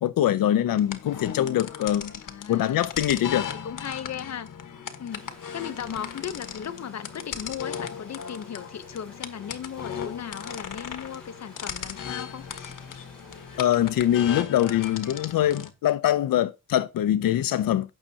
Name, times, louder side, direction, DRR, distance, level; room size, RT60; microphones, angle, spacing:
voice 1, 0.0-2.1 2.5-3.5 13.6-17.9, left 12 dB, 85° left, 0.6 m, -23 dB
sound 1, 0.8-15.7, left 7 dB, 65° left, 1.5 m, -37 dB
voice 2, 2.2-2.9 3.6-4.5 5.0-5.2 5.5-12.5, left 8 dB, 50° left, 0.9 m, -37 dB
sound 2, 5.1-14.3, equal, 5° left, 7.4 m, -52 dB
16.0 x 6.5 x 2.8 m
cardioid pair, 100°, 33 cm